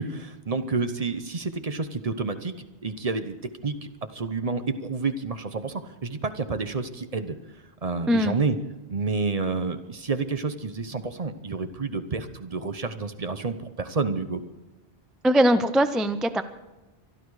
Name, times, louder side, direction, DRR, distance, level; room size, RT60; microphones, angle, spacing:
voice 1, 0.0-2.5 2.8-3.4 3.6-7.4 7.8-8.6 8.9-14.4, right 4 dB, 40° right, 9 dB, 0.8 m, -29 dB
voice 2, 15.2-16.4, equal, ahead, 10 dB, 0.4 m, -21 dB
24.0 x 11.5 x 4.8 m, 1.1 s
omnidirectional pair, 1.1 m